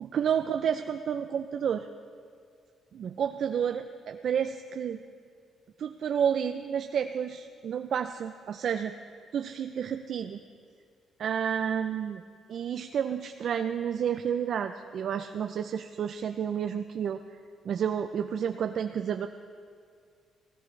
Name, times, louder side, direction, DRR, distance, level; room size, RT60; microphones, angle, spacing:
voice 1, 0.0-1.9 2.9-5.0 5.8-8.9 9.3-10.4 11.2-12.2 12.5-17.2 17.7-19.3, right 8 dB, 60° right, 7 dB, 0.4 m, -30 dB
19.5 x 16.5 x 3.2 m, 2.2 s
cardioid pair, 90°, 0 cm